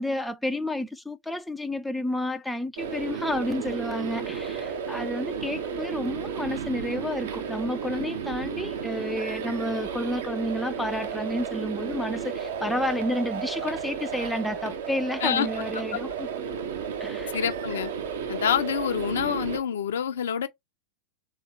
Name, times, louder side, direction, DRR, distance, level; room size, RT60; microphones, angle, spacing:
voice 1, 0.0-16.3 17.0-17.4, left 1 dB, 5° left, 0.4 m, -31 dB
sound 1, 2.8-19.6, right 7 dB, 60° right, 0.8 m, -33 dB
voice 2, 17.3-17.9 18.3-20.5, left 8 dB, 60° left, 0.6 m, -27 dB
3.5 x 2.9 x 4.4 m
figure-of-eight pair, 90°, 0 cm